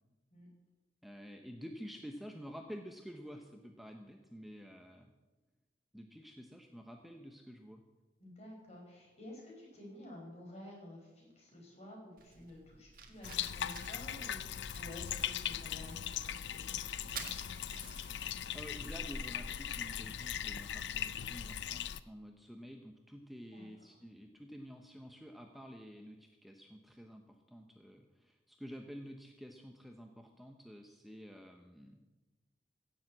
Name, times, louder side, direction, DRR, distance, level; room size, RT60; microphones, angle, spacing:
voice 1, 1.0-5.1 5.9-7.8 18.5-32.0, equal, ahead, 3 dB, 0.8 m, -50 dB
voice 2, 8.2-17.3 23.5-23.7, left 1 dB, 40° left, -1 dB, 5.2 m, -52 dB
Fire, 12.2-21.9, right 4 dB, 55° right, 1.6 m, -52 dB
Bathtub (filling or washing), 13.2-22.0, left 10 dB, 70° left, 0.5 m, -39 dB
15.5 x 7.4 x 7.7 m, 1.2 s
head